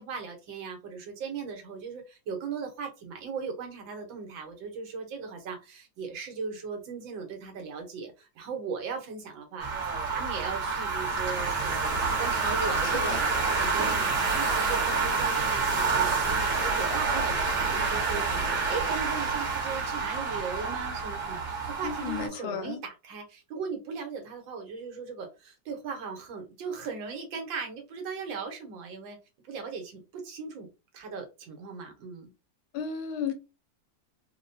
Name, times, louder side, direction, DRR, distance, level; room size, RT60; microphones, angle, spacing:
voice 1, 0.0-13.2 13.4-29.2 29.4-30.7 30.9-32.3, right 5 dB, 75° right, 1.6 m, -38 dB
sound 1, 9.6-22.3, right 4 dB, 45° right, 1.5 m, -28 dB
voice 2, 21.8-22.8 32.7-33.3, left 7 dB, 85° left, 1.5 m, -33 dB
4.0 x 2.1 x 2.6 m
omnidirectional pair, 2.1 m